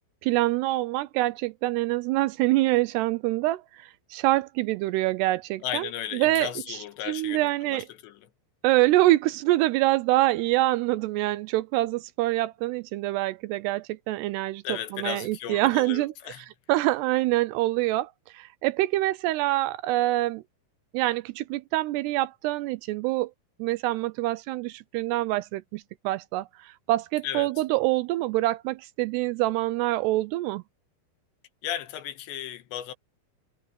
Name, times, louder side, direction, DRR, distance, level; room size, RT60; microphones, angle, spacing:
voice 1, 0.2-6.8 7.1-7.9 8.6-14.6 14.9-16.1 16.7-20.4 20.9-23.3 23.6-30.6, right 17 dB, 80° right, 2.6 m, -25 dB
voice 2, 5.6-8.3 14.6-16.4 27.2-27.5 31.6-32.9, left 11 dB, 80° left, 3.5 m, -35 dB
omnidirectional pair, 5.1 m